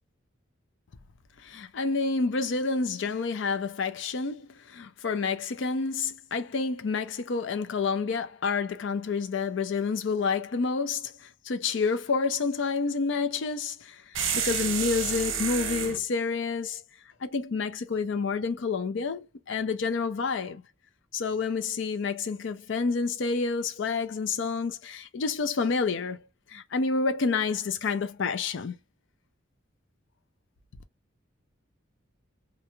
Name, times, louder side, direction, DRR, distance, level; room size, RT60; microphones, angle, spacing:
voice 1, 1.4-16.8 17.2-20.6 21.1-26.2 26.5-28.8, left 4 dB, 65° left, 0.5 m, -29 dB
sound 1, 14.1-16.0, right 7 dB, 75° right, 0.8 m, -29 dB
2.5 x 2.2 x 3.0 m
head